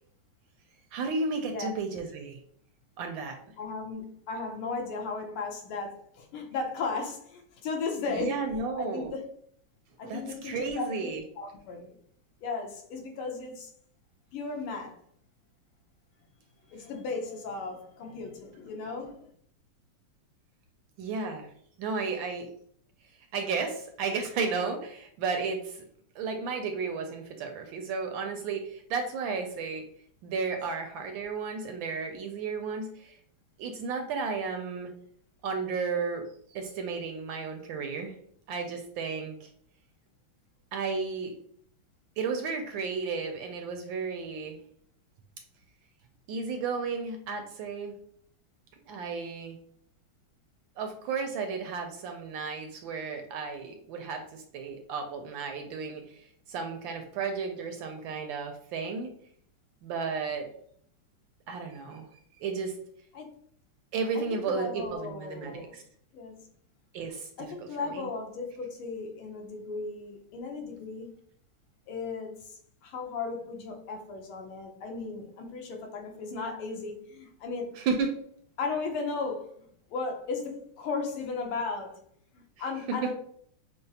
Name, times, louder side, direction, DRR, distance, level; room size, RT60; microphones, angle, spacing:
voice 1, 0.9-2.4 3.0-3.4 8.2-9.1 10.0-11.2 21.0-21.5 21.8-22.5 23.3-25.8 26.2-29.8 30.2-33.2 33.6-34.9 35.4-36.2 36.5-38.1 38.5-39.5 40.7-41.3 42.2-44.6 46.3-47.9 48.9-49.5 50.8-56.0 56.5-59.1 59.8-60.5 61.5-62.1 62.4-62.7 63.9-65.8 66.9-67.3 67.9-68.1 77.8-78.1 82.9-83.1, right 4 dB, 75° right, 5 dB, 1.2 m, -33 dB
voice 2, 3.6-8.4 8.8-9.2 10.0-11.1 11.4-12.0 12.4-13.7 14.3-15.0 16.7-19.3 63.1-63.3 64.1-65.8 66.1-66.3 67.4-71.1 71.9-77.8 78.6-82.0 82.3-83.1, left 4 dB, 80° left, 3 dB, 1.6 m, -36 dB
6.0 x 2.0 x 2.7 m, 0.63 s
omnidirectional pair, 2.4 m